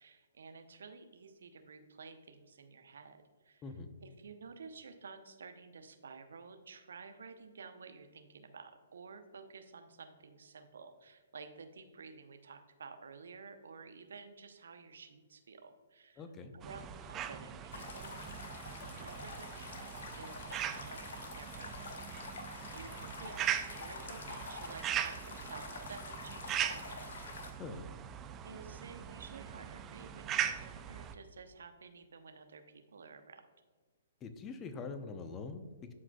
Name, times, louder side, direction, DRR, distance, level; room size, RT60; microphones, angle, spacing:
voice 1, 0.0-3.6 4.0-16.3 16.5-27.2 28.4-33.5, right 5 dB, 65° right, 8 dB, 0.8 m, -52 dB
voice 2, 16.2-16.5 27.6-27.9 34.2-35.9, left 4 dB, 20° left, 8 dB, 0.7 m, -44 dB
sound 1, 16.6-31.1, right 9 dB, 20° right, 0.4 m, -40 dB
sound 2, 17.7-27.5, left 4 dB, 60° left, 0.9 m, -47 dB
13.0 x 4.8 x 2.3 m, 1.4 s
figure-of-eight pair, 125°, 0 cm